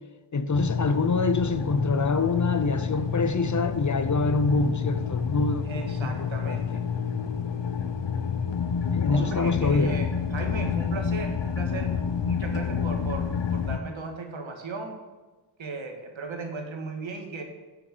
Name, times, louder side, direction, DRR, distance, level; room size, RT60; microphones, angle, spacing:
voice 1, 0.3-6.6 8.9-10.0, left 3 dB, 40° left, 0.8 m, -25 dB
sound 1, 0.5-13.8, left 6 dB, 65° left, 0.9 m, -29 dB
voice 2, 5.6-6.9 9.1-11.9 12.2-15.0 15.6-17.4, right 3 dB, 75° right, 1.9 m, -36 dB
9.6 x 7.0 x 6.3 m
wide cardioid pair, 75°, 47 cm